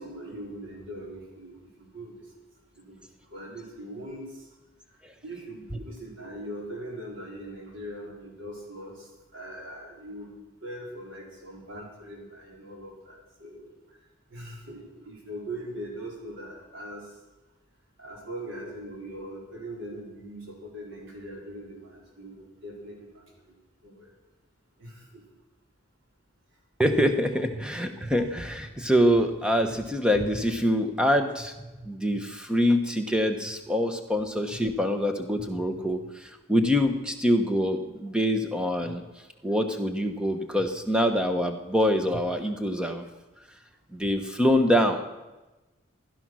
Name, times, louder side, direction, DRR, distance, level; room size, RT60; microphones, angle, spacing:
voice 1, 0.0-2.2 2.7-3.0 3.3-4.5 5.2-13.7 14.3-17.1 18.0-23.5 23.8-24.1 24.8-25.2, right 1 dB, 65° right, -2 dB, 4.7 m, -41 dB
voice 2, 26.8-39.0 39.4-43.0 43.9-45.0, equal, 5° right, 6 dB, 1.0 m, -25 dB
16.0 x 11.5 x 6.2 m, 1.1 s
head